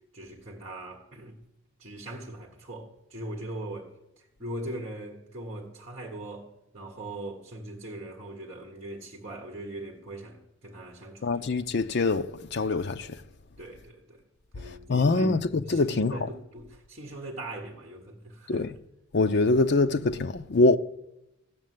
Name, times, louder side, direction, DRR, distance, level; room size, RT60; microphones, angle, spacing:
voice 1, 0.1-1.4 1.8-11.2 13.6-14.2 14.5-18.6, right 1 dB, 30° right, 1.5 m, -40 dB
voice 2, 11.2-13.2 14.6-16.2 18.5-18.7 19.1-20.8, left 3 dB, 50° left, 0.5 m, -24 dB
14.0 x 7.4 x 9.4 m
head